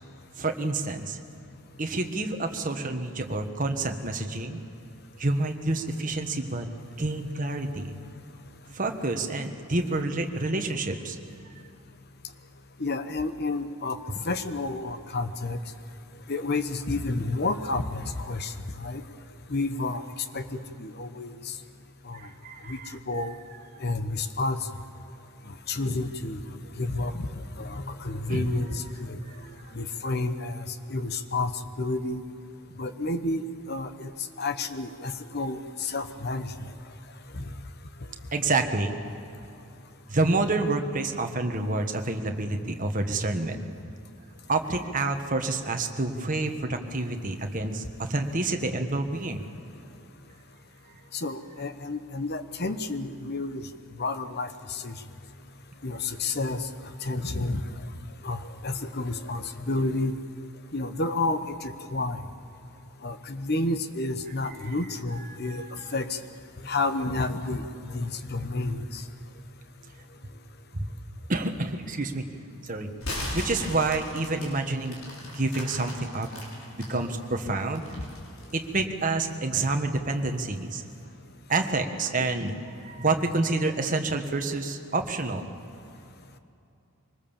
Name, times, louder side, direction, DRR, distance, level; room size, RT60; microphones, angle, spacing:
voice 1, 0.4-1.2 1.8-4.6 5.2-6.7 7.0-7.9 8.7-11.2 22.1-22.9 28.3-28.4 38.3-39.0 40.1-43.6 44.5-49.4 65.3-65.7 70.8-70.9 71.3-72.2 72.6-72.9 73.3-76.3 76.7-77.8 78.5-80.8 81.5-85.4, right 2 dB, 35° right, 5 dB, 1.4 m, -28 dB
voice 2, 12.8-14.0 14.2-15.6 16.3-19.0 19.5-20.0 20.3-21.5 22.1-22.2 22.7-22.8 23.1-23.3 23.8-24.6 25.7-26.4 26.8-29.2 29.7-31.5 31.8-32.2 32.8-34.1 34.4-36.5 37.3-37.4 51.1-53.6 54.0-54.9 55.8-56.7 57.0-57.6 58.2-60.1 60.7-62.2 63.0-65.6 65.9-66.2 66.6-67.7 67.9-69.0 77.9-78.0 82.2-82.3, left 2 dB, 45° left, 10 dB, 1.0 m, -30 dB
sound 1, 73.0-76.9 77.4-78.7, left 1 dB, 65° left, 5.9 m, -37 dB
24.0 x 20.0 x 7.2 m, 2.7 s
head